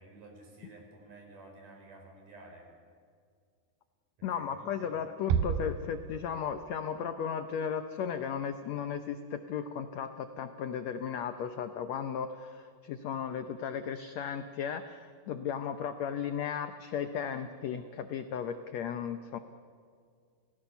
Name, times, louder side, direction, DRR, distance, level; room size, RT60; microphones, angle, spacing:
voice 1, 0.0-2.7 4.3-5.0, right 2 dB, 60° right, 1 dB, 6.0 m, -52 dB
voice 2, 4.2-19.4, left 7 dB, 80° left, 9 dB, 1.5 m, -35 dB
Bass drum, 5.3-6.7, right 7 dB, 80° right, 2.6 m, -31 dB
28.0 x 17.5 x 7.0 m, 2.2 s
omnidirectional pair, 4.2 m